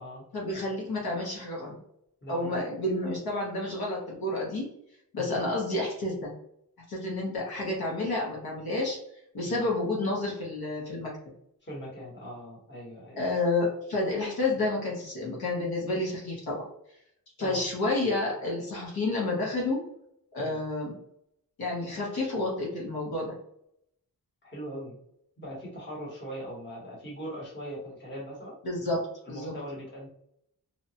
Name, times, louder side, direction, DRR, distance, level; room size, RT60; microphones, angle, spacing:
voice 1, 0.3-1.8 2.3-4.7 5.1-6.3 6.9-9.0 9.3-11.2 13.2-16.6 17.4-19.9 20.3-21.0 21.6-23.4 28.6-29.5, left 2 dB, 70° left, -3 dB, 0.9 m, -30 dB
voice 2, 2.2-2.6 5.2-5.4 9.4-9.6 11.6-13.4 17.4-17.6 20.4-20.6 24.4-25.0 25.4-28.5 29.2-30.1, equal, 30° left, -5 dB, 1.0 m, -40 dB
2.8 x 2.2 x 2.7 m, 0.72 s
wide cardioid pair, 170°, 38 cm